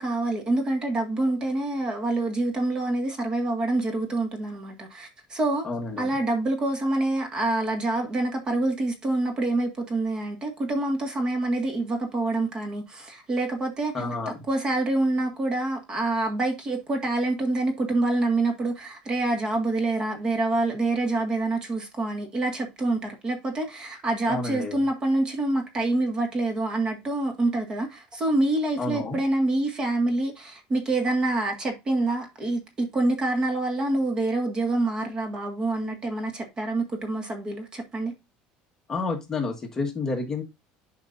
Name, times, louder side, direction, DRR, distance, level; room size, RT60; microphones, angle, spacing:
voice 1, 0.0-5.7 6.0-38.1, right 2 dB, 25° right, 1.8 m, -26 dB
voice 2, 5.6-6.1 13.9-14.4 24.3-24.8 28.8-29.2 38.9-40.4, left 3 dB, 15° left, 1.5 m, -30 dB
10.5 x 5.3 x 2.6 m
cardioid pair, 150°, 3 cm